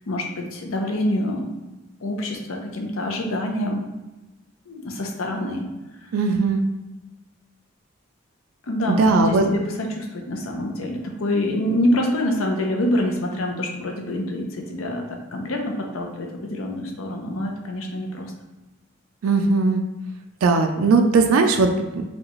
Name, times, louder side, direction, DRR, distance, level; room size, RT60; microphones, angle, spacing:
voice 1, 0.1-1.5 2.0-3.8 4.7-5.6 6.0-6.1 8.6-18.3, left 1 dB, 85° left, 2 dB, 0.7 m, -26 dB
voice 2, 6.1-6.6 8.9-9.4 19.2-19.8 20.4-22.0, right 3 dB, 80° right, 4 dB, 0.4 m, -18 dB
5.1 x 2.4 x 3.0 m, 1.1 s
head